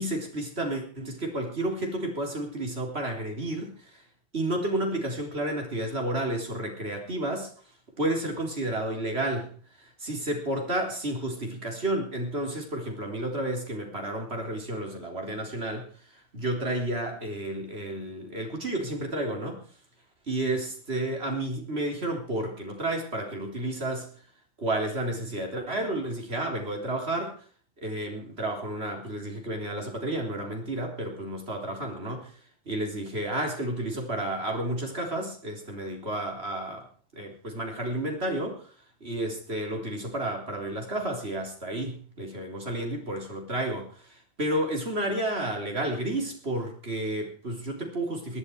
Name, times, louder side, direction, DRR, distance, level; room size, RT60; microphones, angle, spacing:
voice 1, 0.0-4.0 4.3-7.5 8.0-9.5 9.8-19.7 20.3-24.1 24.6-27.4 27.8-32.3 32.7-36.9 37.1-38.7 39.0-48.4, right 1 dB, 80° right, 1 dB, 4.2 m, -31 dB
18.5 x 12.5 x 4.8 m, 0.42 s
omnidirectional pair, 1.1 m